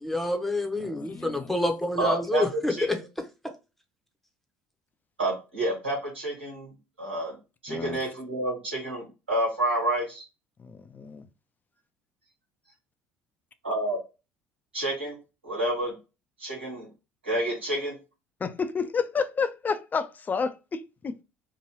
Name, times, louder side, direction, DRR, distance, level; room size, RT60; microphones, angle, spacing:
voice 1, 0.0-2.7, left 1 dB, 5° left, 0.8 m, -27 dB
voice 2, 0.8-1.6 7.7-8.0 10.6-11.3 18.4-21.2, left 5 dB, 30° left, 0.4 m, -30 dB
voice 3, 2.0-3.0 5.2-6.7 7.0-7.3 7.6-10.2 13.6-14.0 14.7-15.2 15.4-15.9 16.4-16.9 17.2-17.9, right 1 dB, 90° right, 1.7 m, -29 dB
3.0 x 2.6 x 2.9 m
hypercardioid pair, 60°, 6 cm